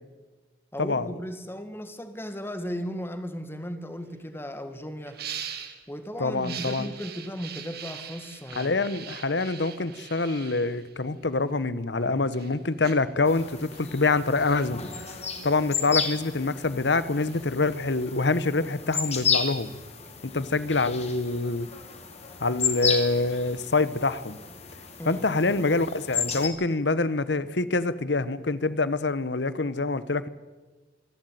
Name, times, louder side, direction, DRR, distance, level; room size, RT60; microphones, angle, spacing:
voice 1, 0.7-5.2 5.9-8.8 25.0-25.8, equal, 15° left, 1.9 m, -36 dB
sound 1, 3.9-4.0 4.3-4.5 5.0-5.8 6.3-11.6 12.1-17.8, right 8 dB, 60° right, 2.3 m, -42 dB
voice 2, 6.2-6.9 8.6-14.9 15.4-19.7 20.2-21.7 22.4-24.4 25.0-30.3, left 3 dB, 70° left, 1.0 m, -26 dB
sound 2, 13.3-26.5, left 6 dB, 35° left, 2.7 m, -33 dB
26.0 x 12.0 x 9.3 m
head